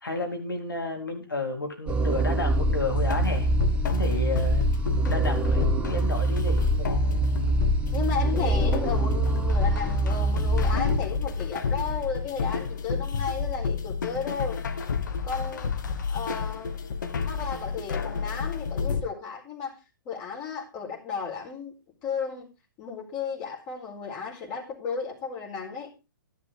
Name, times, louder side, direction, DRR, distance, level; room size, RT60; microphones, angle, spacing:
voice 1, 0.0-3.5 3.8-4.7 5.1-7.4, left 2 dB, 80° left, 3.8 m, -32 dB
sound 1, 1.9-11.0, right 2 dB, 10° right, 0.7 m, -25 dB
sound 2, 3.0-19.0, left 5 dB, 60° left, 1.5 m, -30 dB
voice 2, 7.9-14.6 15.2-15.8 16.1-16.8 17.2-19.8 20.0-21.7 22.0-22.5 22.8-25.9, left 6 dB, 30° left, 4.5 m, -34 dB
12.0 x 11.0 x 3.7 m
figure-of-eight pair, 125°, 11 cm